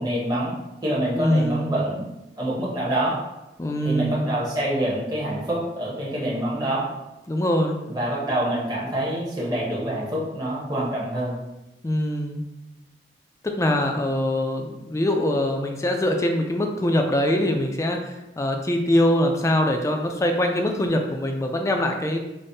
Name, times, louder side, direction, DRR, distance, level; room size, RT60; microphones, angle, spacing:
voice 1, 0.0-2.1 2.4-3.3 3.8-6.9 7.9-11.4, right 1 dB, 20° right, -6 dB, 0.8 m, -26 dB
voice 2, 1.2-1.7 3.6-4.3 7.3-7.8 11.8-12.4 13.4-22.2, left 1 dB, 15° left, 3 dB, 0.3 m, -23 dB
5.1 x 2.1 x 2.7 m, 0.96 s
head